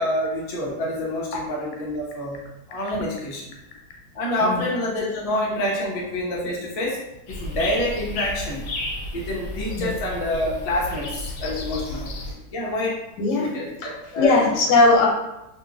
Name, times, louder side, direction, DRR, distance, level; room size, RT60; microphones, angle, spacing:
voice 1, 0.0-2.4 2.7-3.5 4.1-7.0 7.3-8.7 9.1-13.0 13.4-13.7 14.1-14.4, left 1 dB, 45° left, -6 dB, 0.4 m, -27 dB
sound 1, 7.3-12.3, left 1 dB, 60° left, 0.9 m, -32 dB
voice 2, 13.2-13.5 14.2-15.1, left 3 dB, 90° left, -1 dB, 1.3 m, -18 dB
2.9 x 2.7 x 2.4 m, 0.93 s
omnidirectional pair, 1.8 m